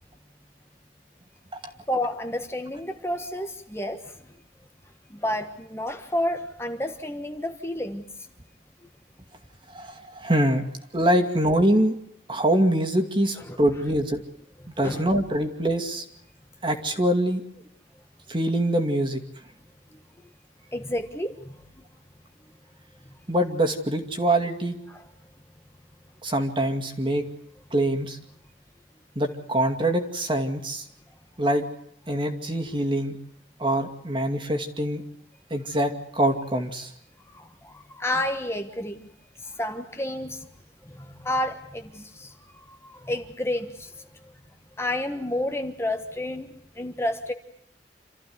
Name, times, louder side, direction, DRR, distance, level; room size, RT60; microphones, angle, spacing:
voice 1, 1.9-4.1 5.1-8.0 13.5-13.6 14.6-15.0 20.7-21.6 23.0-23.2 24.9-25.0 37.3-39.1 39.4-40.5 40.8-44.3 44.8-47.3, left 1 dB, 15° left, 6 dB, 1.4 m, -30 dB
voice 2, 9.7-10.6 10.9-11.9 12.3-14.2 14.8-16.0 16.6-17.4 18.3-19.2 23.3-24.8 26.2-27.3 27.7-28.2 29.2-30.8 31.4-31.6 32.1-33.2 33.6-35.0 35.5-36.9, right 1 dB, 30° right, 4 dB, 2.4 m, -24 dB
28.0 x 14.5 x 9.5 m, 0.76 s
head